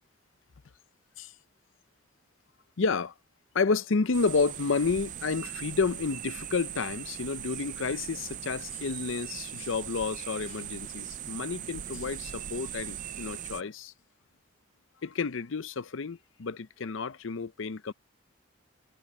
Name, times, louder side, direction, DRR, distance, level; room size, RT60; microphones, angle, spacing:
voice 1, 2.8-3.1 3.5-13.9 15.0-17.9, left 4 dB, 75° left, 0.6 m, -30 dB
sound 1, 4.1-13.6, right 10 dB, 40° right, 0.4 m, -40 dB
head